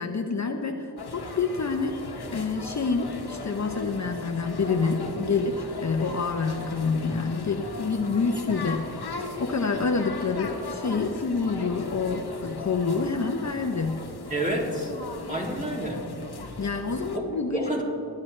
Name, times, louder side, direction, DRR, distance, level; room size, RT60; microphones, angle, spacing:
voice 1, 0.0-2.0 2.3-9.1 9.4-14.0 16.6-17.8, left 4 dB, 45° left, 4 dB, 0.8 m, -27 dB
sound 1, 1.0-17.2, left 3 dB, 70° left, 1.3 m, -37 dB
voice 2, 14.3-14.9 15.3-16.1 17.1-17.2 17.5-17.8, right 1 dB, 20° right, -3 dB, 2.6 m, -28 dB
22.0 x 9.6 x 3.3 m, 2.8 s
wide cardioid pair, 70°, 40 cm